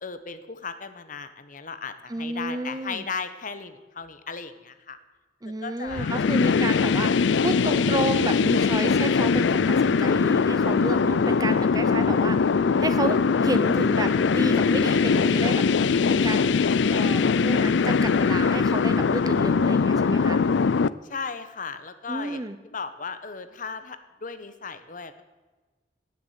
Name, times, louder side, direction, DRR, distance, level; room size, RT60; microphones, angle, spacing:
voice 1, 0.0-5.0 5.6-6.2 21.1-22.4 22.7-25.2, left 5 dB, 45° left, 11 dB, 1.1 m, -36 dB
voice 2, 2.1-3.0 5.4-15.6 16.1-16.6 16.9-20.4 22.1-22.6, right 2 dB, 20° right, 11 dB, 0.7 m, -31 dB
sound 1, 5.9-20.9, left 5 dB, 85° left, 0.4 m, -21 dB
17.5 x 7.2 x 8.1 m, 1.2 s
head